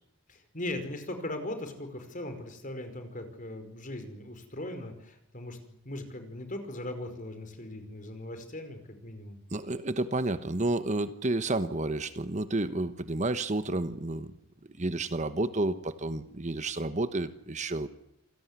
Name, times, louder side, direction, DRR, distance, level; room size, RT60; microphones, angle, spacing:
voice 1, 0.3-9.4, left 1 dB, 40° left, 8 dB, 5.1 m, -39 dB
voice 2, 9.5-14.3 14.8-17.9, right 2 dB, 35° right, 11 dB, 1.2 m, -30 dB
28.0 x 18.0 x 9.7 m, 0.77 s
head